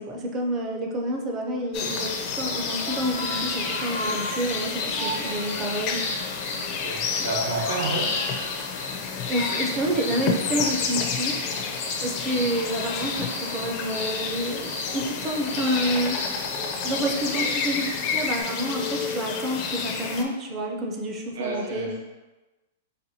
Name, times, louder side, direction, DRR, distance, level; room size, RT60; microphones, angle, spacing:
voice 1, 0.0-6.0 9.3-11.4 12.0-16.2 16.8-21.9, right 1 dB, 20° right, 1 dB, 0.4 m, -29 dB
sound 1, 1.7-20.2, left 5 dB, 35° left, 0.4 m, -30 dB
sound 2, 1.9-18.4, left 2 dB, 90° left, 0.8 m, -36 dB
sound 3, 2.3-8.8, right 1 dB, 40° right, 0.8 m, -38 dB
voice 2, 6.7-8.1 17.3-17.5 21.3-22.0, right 2 dB, 80° right, -2 dB, 1.0 m, -30 dB
4.1 x 2.6 x 2.7 m, 1.1 s
supercardioid pair, 160°, 0 cm